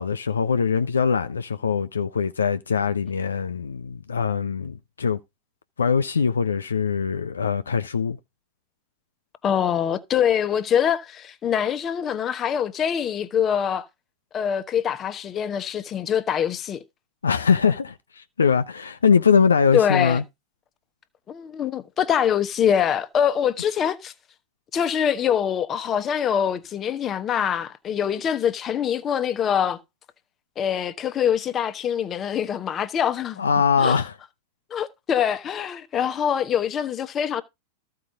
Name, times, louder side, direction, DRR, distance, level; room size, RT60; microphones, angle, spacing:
voice 1, 0.0-5.2 5.8-8.2 17.2-20.2 33.4-34.1, left 6 dB, 70° left, 0.5 m, -22 dB
voice 2, 9.4-13.9 14.3-16.8 19.7-20.2 21.3-24.1 24.7-29.8 30.6-33.5 33.8-34.0 34.7-37.4, left 8 dB, 25° left, 0.9 m, -24 dB
14.0 x 4.8 x 3.8 m
figure-of-eight pair, 90°, 0 cm